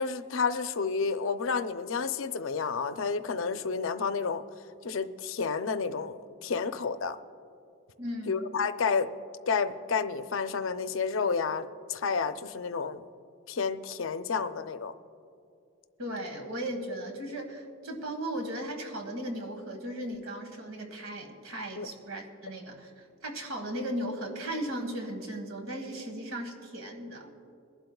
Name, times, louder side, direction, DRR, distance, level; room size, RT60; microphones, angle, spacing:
voice 1, 0.0-4.4 4.8-7.2 8.3-9.1 9.5-13.1 13.5-14.9 21.8-21.9, left 5 dB, 75° left, 10 dB, 0.6 m, -30 dB
voice 2, 8.0-8.4 16.0-27.3, right 1 dB, 90° right, 4 dB, 1.7 m, -37 dB
22.5 x 11.5 x 2.3 m, 2.6 s
head